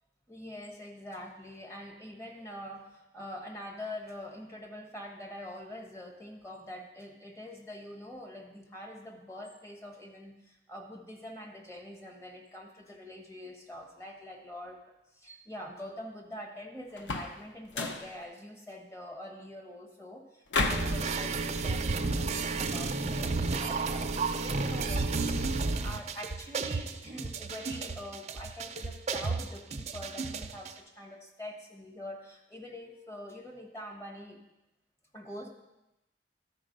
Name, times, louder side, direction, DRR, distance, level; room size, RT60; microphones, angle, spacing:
voice 1, 0.3-14.8 15.1-34.4 35.1-35.5, left 1 dB, 15° left, 0 dB, 1.4 m, -45 dB
sound 1, 17.0-17.4 17.7-18.1 20.5-21.0, left 3 dB, 90° left, 0.8 m, -31 dB
sound 2, 20.7-30.7, right 3 dB, 40° right, 0.5 m, -32 dB
12.5 x 4.6 x 5.2 m, 0.94 s
head